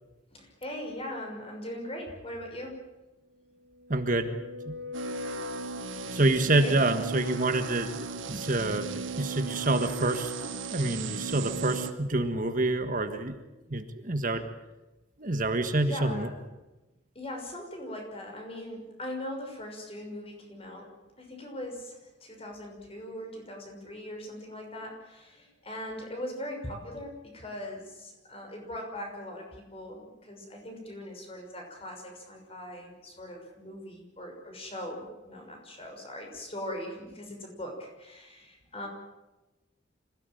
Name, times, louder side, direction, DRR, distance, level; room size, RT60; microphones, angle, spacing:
voice 1, 0.3-2.8 6.5-7.0 15.8-16.4 17.1-20.9 21.2-38.9, left 1 dB, 30° left, 2 dB, 6.0 m, -40 dB
sound 1, 3.4-6.4, left 5 dB, 60° right, 2.9 m, -41 dB
voice 2, 3.9-4.3 4.7-4.8 6.1-8.0 8.3-10.3 10.7-13.4 13.7-14.4 15.2-16.3, right 2 dB, 45° right, 7 dB, 1.6 m, -27 dB
sound 2, 4.9-11.9, right 5 dB, 85° right, 1.7 m, -37 dB
26.0 x 17.0 x 9.2 m, 1.1 s
head